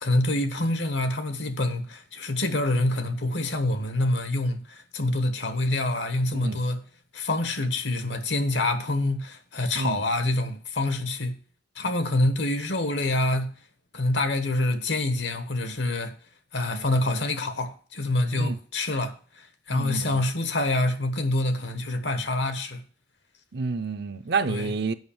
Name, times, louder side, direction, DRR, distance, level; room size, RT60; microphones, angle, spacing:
voice 1, 0.0-6.8 7.1-11.4 11.8-13.6 13.9-16.1 16.5-22.8 24.5-24.7, left 2 dB, 75° left, 1.2 m, -26 dB
voice 2, 19.7-20.3 23.5-24.9, right 4 dB, 60° right, 0.6 m, -29 dB
8.0 x 5.6 x 7.0 m
head